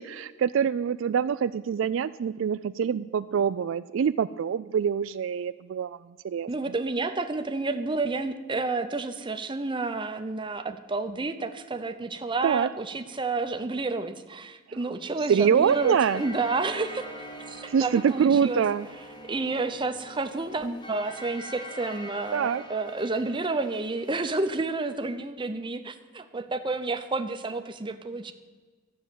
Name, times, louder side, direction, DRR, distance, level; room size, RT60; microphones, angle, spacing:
voice 1, 0.0-6.0 6.2-6.5 12.4-12.7 14.7-14.8 15.3-16.2 17.7-18.9 22.3-22.6, right 7 dB, 70° right, 14 dB, 0.3 m, -25 dB
voice 2, 6.5-17.1 17.5-18.6 19.3-28.3, right 3 dB, 25° right, 8 dB, 0.7 m, -30 dB
sound 1, 15.7-24.5, equal, 20° left, 1.4 m, -43 dB
13.5 x 6.5 x 9.3 m, 1.4 s
head